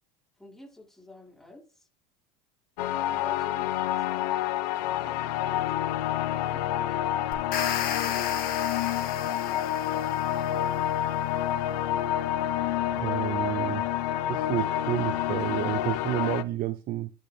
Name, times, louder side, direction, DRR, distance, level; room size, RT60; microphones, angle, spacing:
voice 1, 0.4-1.9 3.1-4.3 5.0-5.6 6.3-7.2, left 2 dB, ahead, 4.5 m, -49 dB
sound 1, 2.8-16.4, left 12 dB, 80° left, 0.7 m, -28 dB
sound 2, 7.3-10.5, left 9 dB, 45° left, 1.7 m, -34 dB
voice 2, 12.9-13.8 14.3-17.1, right 12 dB, 45° right, 0.6 m, -30 dB
11.5 x 4.4 x 3.4 m
supercardioid pair, 105°, 21 cm